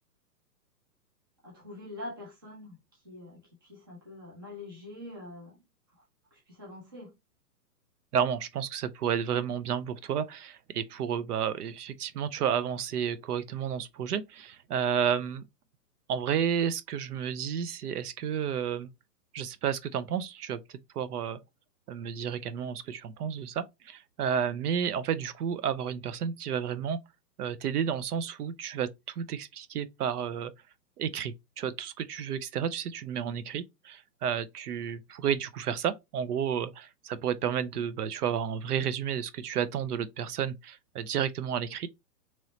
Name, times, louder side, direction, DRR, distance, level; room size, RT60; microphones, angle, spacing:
voice 1, 1.4-2.8 3.0-5.6 6.0-6.1 6.3-7.1, left 2 dB, 15° right, 0.5 m, -44 dB
voice 2, 8.1-15.4 16.1-18.9 19.3-20.6 20.9-21.4 21.9-27.0 27.4-30.5 31.0-41.9, right 8 dB, 70° right, 0.5 m, -31 dB
3.0 x 2.7 x 3.0 m
hypercardioid pair, 165°, 49 cm